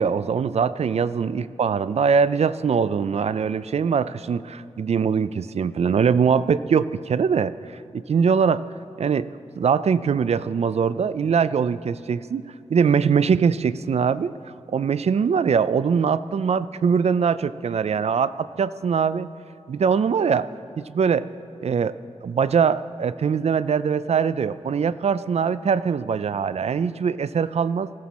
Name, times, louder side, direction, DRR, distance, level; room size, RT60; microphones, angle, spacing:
voice 1, 0.0-7.5 7.9-8.6 9.0-9.3 9.6-14.3 14.7-19.3 19.7-20.5 20.9-21.3 21.6-21.9 22.2-27.9, right 6 dB, 65° right, 15 dB, 0.4 m, -22 dB
19.0 x 15.0 x 4.2 m, 2.5 s
wide cardioid pair, 110°, 12 cm